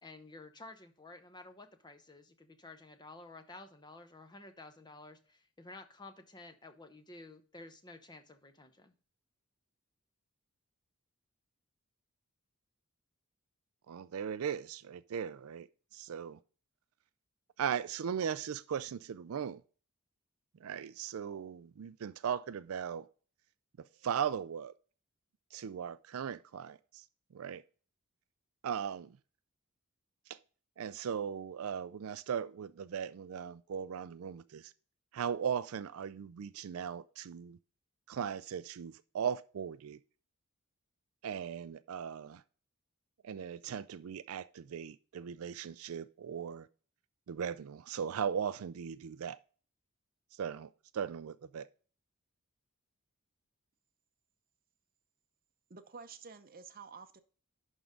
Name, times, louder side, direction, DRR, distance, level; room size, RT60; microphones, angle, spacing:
voice 1, 0.0-8.9, left 2 dB, 20° left, 0.8 m, -52 dB
voice 2, 13.9-15.7 15.9-16.4 17.6-19.6 20.6-23.1 23.8-24.7 25.5-27.0 27.3-27.6 28.6-29.2 30.3-30.4 30.8-34.7 35.1-37.6 38.1-40.0 41.2-42.4 43.2-46.7 47.3-49.4 50.4-51.7, right 8 dB, 75° right, 0.4 m, -38 dB
voice 3, 55.7-57.2, right 5 dB, 45° right, 0.7 m, -50 dB
11.0 x 3.7 x 5.1 m
head